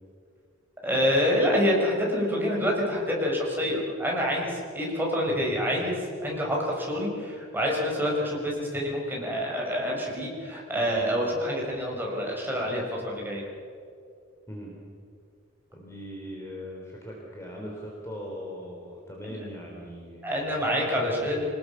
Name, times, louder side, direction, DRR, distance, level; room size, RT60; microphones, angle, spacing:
voice 1, 0.8-13.5 19.3-19.4 20.2-21.5, equal, 10° right, -2 dB, 6.0 m, -27 dB
voice 2, 15.7-20.3, equal, 15° left, -2 dB, 3.5 m, -39 dB
26.0 x 20.0 x 7.0 m, 2.3 s
head